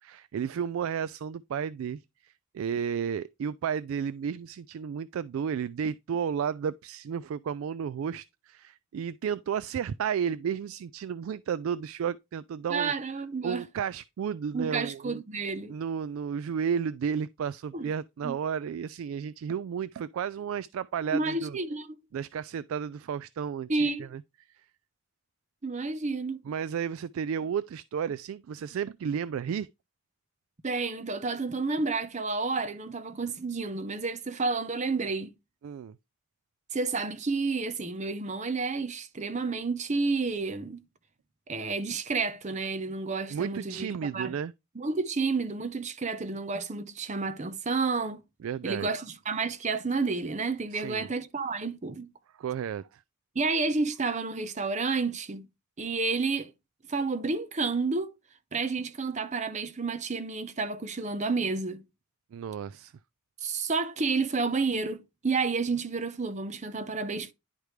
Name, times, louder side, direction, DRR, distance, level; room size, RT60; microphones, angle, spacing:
voice 1, 0.0-12.9 13.4-15.2 15.7-21.6 22.1-24.2 26.5-29.7 35.6-36.0 43.3-44.5 48.4-48.9 50.7-51.1 52.4-53.0 62.3-62.9, right 7 dB, 70° right, 0.3 m, -33 dB
voice 2, 12.7-13.6 14.5-15.7 17.7-17.9 18.2-18.4 21.1-21.9 23.7-24.1 25.6-26.4 30.6-35.3 36.7-40.8 41.5-43.9 44.1-44.3 44.8-48.2 48.6-52.1 53.3-55.4 55.8-56.5 56.9-58.1 58.5-61.8 63.4-67.3, right 4 dB, 35° right, 0.7 m, -30 dB
10.5 x 4.9 x 3.2 m
head